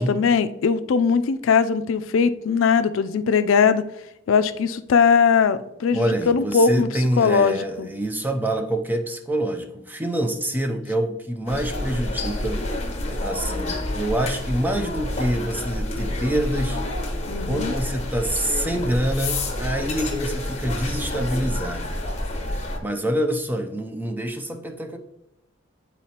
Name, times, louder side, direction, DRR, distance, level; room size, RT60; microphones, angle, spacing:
voice 1, 0.0-3.8 4.3-6.9 7.2-7.9 17.3-17.7, left 6 dB, 80° left, 11 dB, 0.4 m, -20 dB
voice 2, 5.9-12.6 13.1-16.8 17.5-22.0 22.8-25.0, right 1 dB, 10° right, 5 dB, 0.5 m, -26 dB
sound 1, 11.5-22.8, left 1 dB, 35° left, 0.8 m, -28 dB
9.0 x 4.1 x 2.8 m, 0.85 s
head